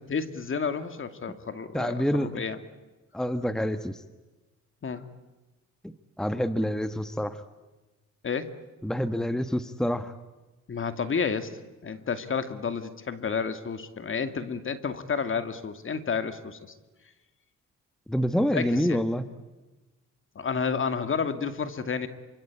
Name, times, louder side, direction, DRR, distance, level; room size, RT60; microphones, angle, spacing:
voice 1, 0.1-2.6 4.8-5.1 8.2-8.5 10.7-11.5 11.8-16.7 18.5-19.0 20.4-22.1, left 6 dB, 45° left, 9 dB, 2.4 m, -30 dB
voice 2, 1.7-2.4 3.1-4.0 5.8-7.4 8.8-10.1 18.1-19.2, equal, ahead, 10 dB, 1.3 m, -27 dB
27.0 x 25.5 x 8.6 m, 1.1 s
cardioid pair, 90°, 30 cm